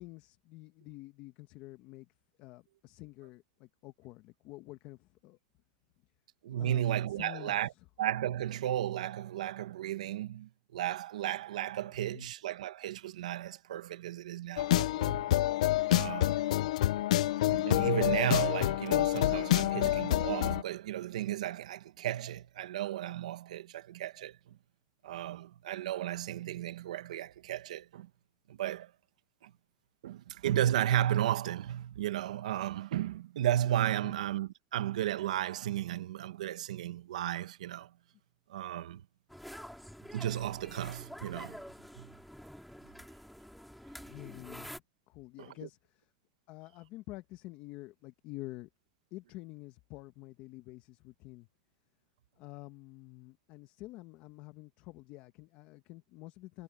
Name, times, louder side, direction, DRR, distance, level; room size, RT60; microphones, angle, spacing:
voice 1, 0.0-2.1 2.4-5.4 6.5-7.6 11.8-12.3 34.0-34.1 44.0-44.7 45.1-46.1 46.5-48.7 49.1-51.5 52.4-56.6, left 19 dB, 45° left, 1.4 m, -48 dB
voice 2, 6.4-7.7 8.0-15.3 15.9-16.4 17.5-24.6 25.0-28.1 28.5-28.9 29.4-29.5 30.0-37.9 38.5-39.0 40.1-41.6 42.0-42.1 45.4-45.5, right 12 dB, 85° right, 1.4 m, -34 dB
sound 1, 14.6-20.6, left 15 dB, 80° left, 0.5 m, -28 dB
sound 2, 39.3-44.8, equal, ahead, 3.2 m, -48 dB
supercardioid pair, 140°, 4 cm